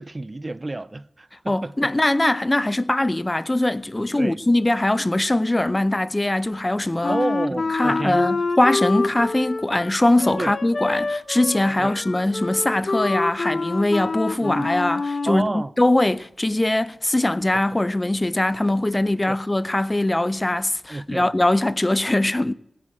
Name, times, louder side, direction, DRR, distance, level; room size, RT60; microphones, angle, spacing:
voice 1, 0.0-1.9 4.2-4.4 7.1-8.2 10.4-10.5 11.8-11.9 14.4-14.7 15.2-15.7 17.5-17.6 19.3-19.4 20.9-21.3, right 2 dB, 35° right, 0.5 m, -29 dB
voice 2, 1.5-7.2 7.7-22.5, left 1 dB, 25° left, 0.6 m, -21 dB
Wind instrument woodwind instrument, 7.0-15.5, left 3 dB, 55° left, 0.8 m, -27 dB
16.5 x 7.7 x 7.7 m
cardioid pair, 40°, 0 cm